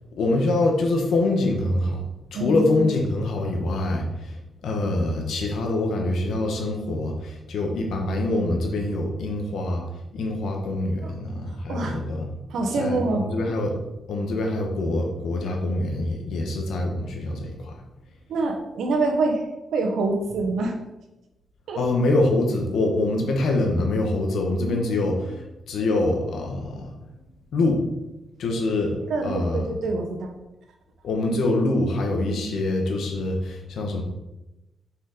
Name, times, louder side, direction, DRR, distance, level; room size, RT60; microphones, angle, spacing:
voice 1, 0.2-2.0 2.3-4.4 4.6-9.9 10.1-12.3 12.8-13.8 14.1-17.7 21.8-27.0 27.5-27.8 28.4-29.7 31.0-34.0, left 2 dB, 80° left, 2 dB, 1.7 m, -25 dB
voice 2, 2.3-2.9 11.0-11.1 11.7-12.0 12.5-13.2 18.3-19.4 19.7-20.7 21.7-21.8 24.7-25.3 29.1-30.3, right 3 dB, 85° right, 3 dB, 1.4 m, -26 dB
6.6 x 5.4 x 5.2 m, 0.98 s
wide cardioid pair, 130°, 0 cm